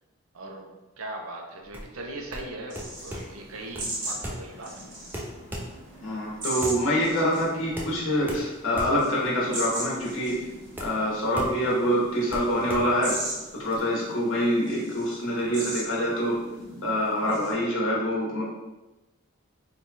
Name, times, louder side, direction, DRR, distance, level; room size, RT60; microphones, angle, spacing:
voice 1, 0.3-4.7, right 2 dB, 80° right, 1 dB, 0.6 m, -39 dB
sound 1, 1.6-13.8, equal, 10° right, 0.4 m, -39 dB
sound 2, 2.7-17.5, right 1 dB, 55° right, 1.0 m, -39 dB
voice 2, 6.0-10.5 10.8-13.2 13.6-16.5 16.8-18.4, equal, 60° left, -5 dB, 1.1 m, -25 dB
3.2 x 2.3 x 4.0 m, 1.1 s
head